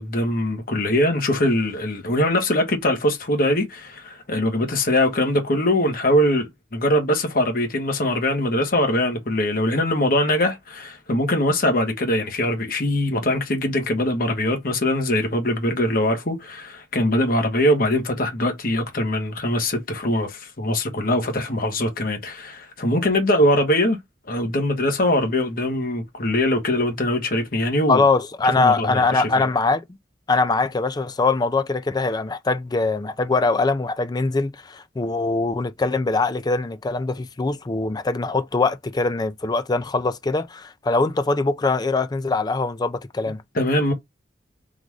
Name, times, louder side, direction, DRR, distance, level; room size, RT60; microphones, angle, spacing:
voice 1, 0.0-24.0 24.3-28.0 28.4-29.5 43.5-43.9, left 1 dB, 50° left, 1.2 m, -22 dB
voice 2, 27.9-29.8 30.3-43.4, left 3 dB, 20° left, 0.4 m, -22 dB
3.9 x 2.5 x 4.7 m
head